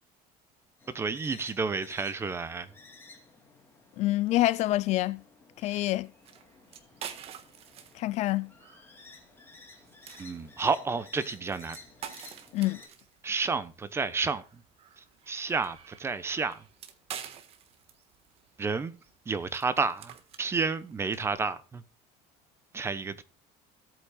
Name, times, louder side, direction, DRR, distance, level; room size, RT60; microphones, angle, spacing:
sound 1, 0.8-12.9, left 4 dB, 15° left, 2.6 m, -54 dB
voice 1, 0.9-2.7 5.6-5.9 10.2-11.8 13.2-14.6 15.0-16.6 18.6-19.0 19.3-21.8 22.7-23.2, right 4 dB, 15° right, 0.9 m, -31 dB
voice 2, 4.0-5.2 5.6-6.1 7.9-8.5 12.5-12.8, left 16 dB, 45° left, 0.5 m, -26 dB
sound 2, 6.0-21.4, right 9 dB, 40° right, 1.5 m, -48 dB
17.0 x 8.5 x 2.3 m
cardioid pair, 160°, 15 cm